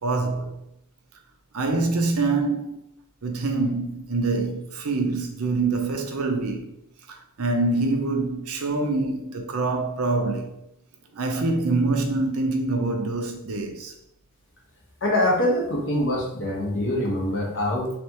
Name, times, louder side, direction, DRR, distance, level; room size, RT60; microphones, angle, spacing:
voice 1, 0.0-0.5 1.5-2.8 3.2-6.7 7.4-10.5 11.1-13.9, right 3 dB, 75° right, 0.7 m, -25 dB
voice 2, 15.0-17.9, left 1 dB, 60° left, 1.2 m, -24 dB
3.6 x 3.4 x 2.9 m
head